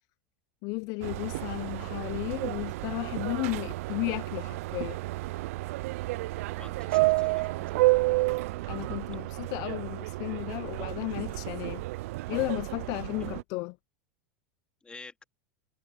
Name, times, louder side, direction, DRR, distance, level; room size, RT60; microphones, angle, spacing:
voice 1, 0.6-5.0 8.7-11.9 12.3-13.8, left 26 dB, 50° left, 0.5 m, -34 dB
Subway metro underground, 1.0-13.4, right 21 dB, 70° right, 0.5 m, -31 dB
voice 2, 6.6-7.9 13.1-13.3 14.8-15.2, left 3 dB, 15° left, 3.8 m, -49 dB
hypercardioid pair, 115°, 8 cm